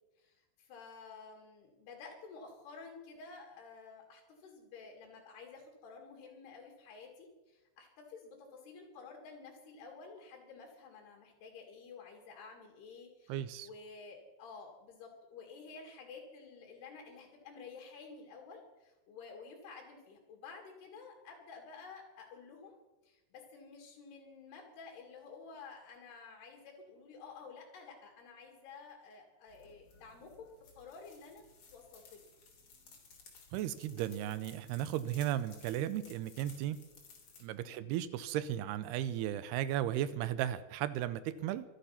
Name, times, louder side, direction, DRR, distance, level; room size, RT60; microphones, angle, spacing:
voice 1, 0.2-22.8 23.0-31.4 31.7-32.3 37.6-37.8, left 4 dB, 65° left, 0 dB, 4.2 m, -52 dB
voice 2, 13.3-13.7 33.5-36.8 37.4-41.6, right 12 dB, 80° right, 15 dB, 2.4 m, -35 dB
sound 1, 29.5-37.4, left 5 dB, 45° left, 3.8 m, -58 dB
24.5 x 9.3 x 5.8 m, 1.1 s
omnidirectional pair, 5.1 m